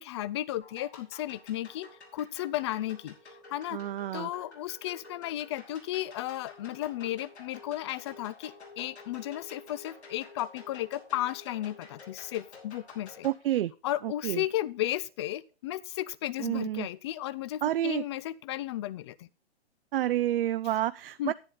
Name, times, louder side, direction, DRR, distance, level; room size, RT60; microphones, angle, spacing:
voice 1, 0.0-3.2 3.5-3.8 4.1-13.3 13.8-19.3 21.2-21.3, left 14 dB, 25° left, 20 dB, 0.4 m, -34 dB
sound 1, 0.6-13.3, left 3 dB, 80° left, 4.1 m, -51 dB
voice 2, 3.7-4.3 13.2-13.7 14.0-14.4 16.4-16.9 17.6-18.0 19.9-21.3, right 12 dB, 60° right, 14 dB, 0.4 m, -29 dB
10.5 x 9.5 x 3.8 m, 0.34 s
hypercardioid pair, 130°, 33 cm